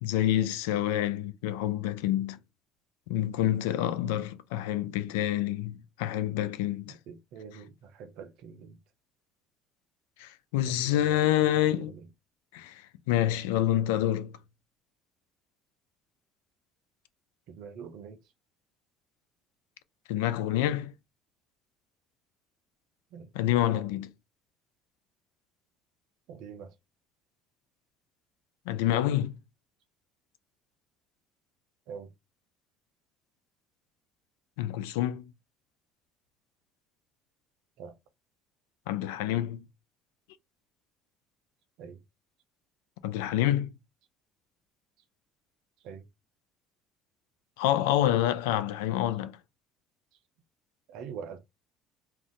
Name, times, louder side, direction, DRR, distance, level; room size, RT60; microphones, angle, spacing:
voice 1, 0.0-2.4 3.1-7.0 10.2-11.9 12.5-12.8 13.1-14.3 20.1-20.9 23.4-24.1 28.7-29.4 34.6-35.2 38.9-39.7 43.0-43.8 47.6-49.4, left 12 dB, 85° left, 0.4 m, -27 dB
voice 2, 7.1-8.8 10.6-12.1 17.5-18.2 23.1-23.3 26.3-26.7 31.9-32.1 37.8-38.0 41.8-42.0 45.8-46.1 50.9-51.4, right 6 dB, 70° right, 0.6 m, -44 dB
2.6 x 2.3 x 3.7 m
hypercardioid pair, 75°, 0 cm